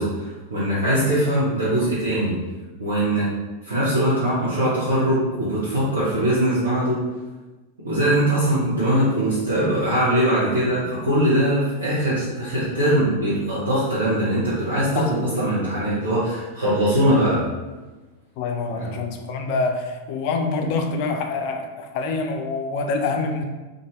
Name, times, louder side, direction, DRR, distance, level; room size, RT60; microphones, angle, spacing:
voice 1, 0.0-2.4 2.8-3.3 3.6-7.0 7.8-17.5 18.7-19.0, right 1 dB, 75° right, -10 dB, 0.7 m, -21 dB
voice 2, 14.9-15.3 18.4-21.7 21.9-23.4, left 3 dB, 45° left, 4 dB, 0.4 m, -26 dB
2.6 x 2.4 x 3.0 m, 1.2 s
figure-of-eight pair, 90°, 0 cm